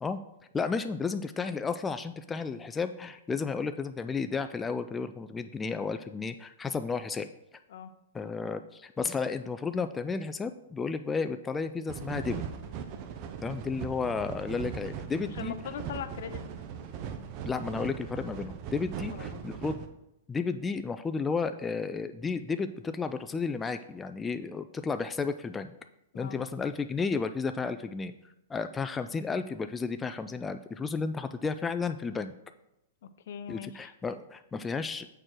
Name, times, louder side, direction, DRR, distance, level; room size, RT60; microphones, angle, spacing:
voice 1, 0.5-7.3 8.1-12.4 13.4-15.5 17.5-19.8 20.3-25.7 26.1-28.1 28.5-32.3 33.5-35.1, left 4 dB, 10° left, 9 dB, 0.3 m, -32 dB
sound 1, 11.9-19.9, right 7 dB, 40° right, 0.8 m, -39 dB
voice 2, 15.3-16.5 19.0-19.6 26.1-26.4 33.0-33.9, left 8 dB, 65° left, 12 dB, 0.6 m, -41 dB
6.7 x 4.4 x 6.2 m, 0.86 s
hypercardioid pair, 140°, 0 cm